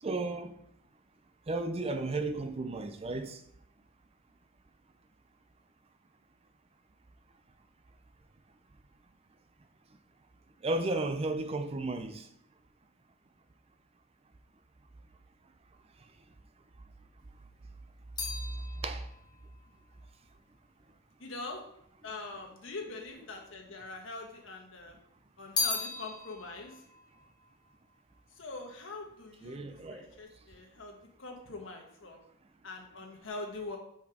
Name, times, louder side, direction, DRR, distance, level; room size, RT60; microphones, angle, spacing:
voice 1, 0.0-0.6 1.5-3.4 10.6-12.3 18.8-19.1 29.4-30.2, right 2 dB, 30° right, 0.5 m, -34 dB
sound 1, 17.2-21.6 22.4-23.2 23.5-24.6 25.0-28.5 28.8-29.3, left 4 dB, 20° left, 1.4 m, -39 dB
voice 2, 21.2-21.6 22.0-25.0 25.4-26.8 28.3-32.2 32.6-33.8, left 3 dB, 75° left, 1.4 m, -43 dB
5.8 x 4.5 x 4.9 m
head